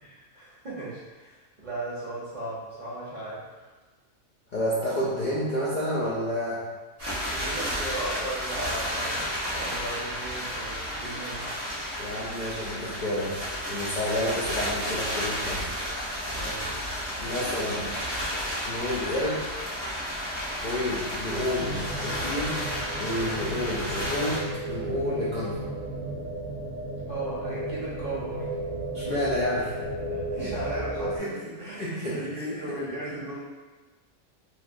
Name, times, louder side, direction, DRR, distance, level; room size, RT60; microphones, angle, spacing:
voice 1, 0.0-3.7 7.3-11.5 16.3-16.8 27.1-28.5 30.1-33.4, right 1 dB, 40° right, -8 dB, 0.8 m, -36 dB
voice 2, 4.5-6.6 12.0-15.7 17.2-17.9 18.7-19.4 20.6-22.6 23.0-25.6 28.9-29.7 30.4-30.5 31.2-31.3 31.7-32.6, left 1 dB, 55° left, -8 dB, 0.5 m, -30 dB
sound 1, 7.0-24.4, equal, 20° right, 1.1 m, -32 dB
sound 2, 21.6-31.2, right 1 dB, 85° right, 1.0 m, -34 dB
3.2 x 2.6 x 2.4 m, 1.3 s
omnidirectional pair, 1.3 m